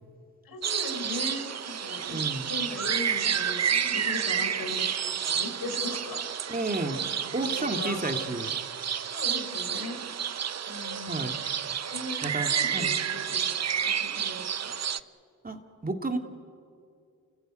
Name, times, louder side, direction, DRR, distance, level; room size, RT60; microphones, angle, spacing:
voice 1, 0.4-6.2 7.1-8.1 9.1-10.0 10.7-11.3 11.8-13.5 13.8-14.7, left 2 dB, 80° left, 5 dB, 4.1 m, -39 dB
sound 1, 0.6-15.0, right 8 dB, 45° right, 0.8 m, -30 dB
voice 2, 2.1-2.5 6.5-8.5 11.1-11.4 12.2-13.0 15.4-16.2, right 2 dB, 25° right, 4 dB, 2.5 m, -32 dB
29.0 x 14.5 x 9.4 m, 2.4 s
supercardioid pair, 40°, 36 cm